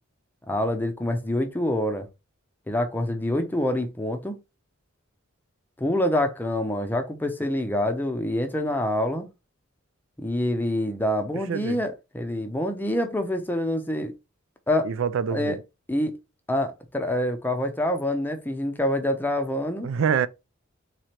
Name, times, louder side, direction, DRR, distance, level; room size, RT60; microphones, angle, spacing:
voice 1, 0.5-2.1 2.7-4.4 5.8-9.3 10.2-14.1 14.7-14.9 15.3-15.6 15.9-16.2 16.5-19.9, left 1 dB, 10° left, 0.6 m, -26 dB
voice 2, 14.8-15.6 19.8-20.3, right 7 dB, 70° right, 0.4 m, -25 dB
3.8 x 3.2 x 4.2 m
head